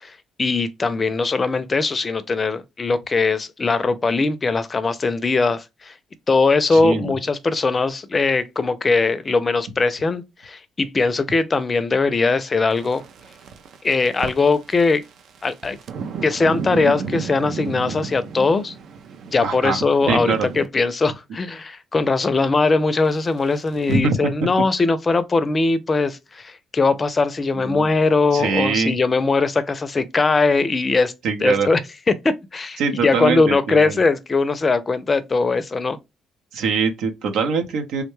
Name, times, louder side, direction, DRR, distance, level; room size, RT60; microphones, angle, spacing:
voice 1, 0.4-5.9 6.3-13.0 13.8-15.0 15.4-15.8 16.2-18.7 19.3-31.1 31.4-31.8 32.1-36.0, left 3 dB, 30° left, 0.4 m, -20 dB
voice 2, 6.7-7.2 19.4-20.5 23.9-24.5 27.6-27.9 28.3-29.0 31.2-31.7 32.8-34.0 36.5-38.0, right 4 dB, 85° right, 0.8 m, -23 dB
sound 1, 12.7-20.7 23.1-24.0, right 5 dB, 65° right, 0.4 m, -33 dB
3.4 x 2.2 x 3.0 m
cardioid pair, 115°, 0 cm